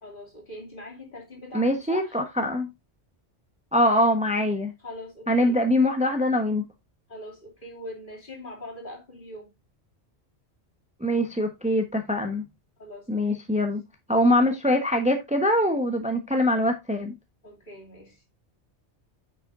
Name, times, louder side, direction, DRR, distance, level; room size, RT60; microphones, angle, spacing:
voice 1, 0.0-2.2 4.8-5.6 7.1-9.5 12.8-13.3 17.4-18.2, left 1 dB, 45° left, 2.9 m, -42 dB
voice 2, 1.5-2.7 3.7-4.7 5.3-6.7 11.0-12.4 13.1-13.8 14.1-17.1, left 1 dB, 5° right, 1.1 m, -23 dB
9.2 x 6.8 x 2.6 m
omnidirectional pair, 1.2 m